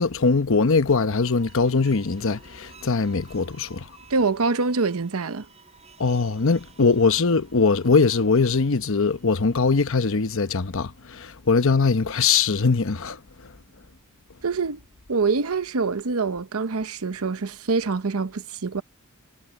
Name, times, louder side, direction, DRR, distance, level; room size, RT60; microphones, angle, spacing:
voice 1, 0.0-3.9 6.0-13.2, left 4 dB, 65° left, 0.9 m, -21 dB
sound 1, 1.0-10.4, right 5 dB, 30° right, 6.6 m, -53 dB
voice 2, 4.1-5.5 14.4-14.8 15.1-18.8, right 4 dB, 90° right, 0.8 m, -25 dB
head